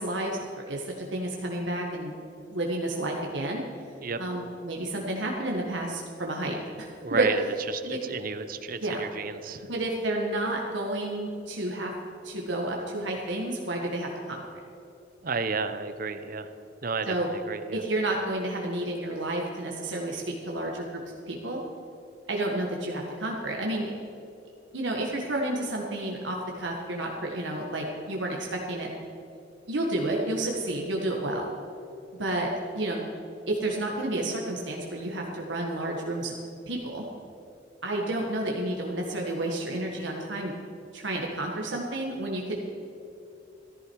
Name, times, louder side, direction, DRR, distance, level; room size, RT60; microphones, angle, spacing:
voice 1, 0.0-2.1 2.5-3.6 4.2-7.3 7.8-8.0 8.8-9.0 9.7-11.9 12.2-14.4 17.1-17.3 17.7-21.6 22.3-23.9 24.7-28.9 29.7-31.5 32.2-33.0 33.5-36.3 36.7-37.0 37.8-40.5 40.9-42.8, right 1 dB, 75° right, 0 dB, 1.6 m, -30 dB
voice 2, 7.0-9.6 15.2-16.5 16.8-17.8, right 4 dB, 50° right, 10 dB, 0.8 m, -32 dB
14.5 x 14.0 x 4.7 m, 2.7 s
head